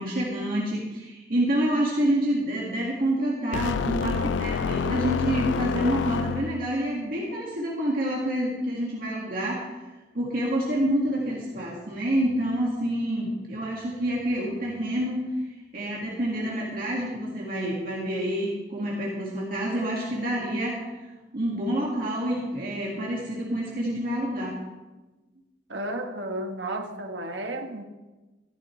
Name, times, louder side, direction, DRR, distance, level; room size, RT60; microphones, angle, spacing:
voice 1, 0.0-9.7 10.1-15.2 15.7-20.8 21.3-24.6, right 1 dB, 50° right, -5 dB, 2.1 m, -27 dB
sound 1, 3.5-6.8, left 6 dB, 80° left, 0.3 m, -28 dB
voice 2, 25.7-27.8, right 1 dB, 75° right, 4 dB, 1.4 m, -33 dB
15.0 x 13.0 x 3.3 m, 1.2 s
head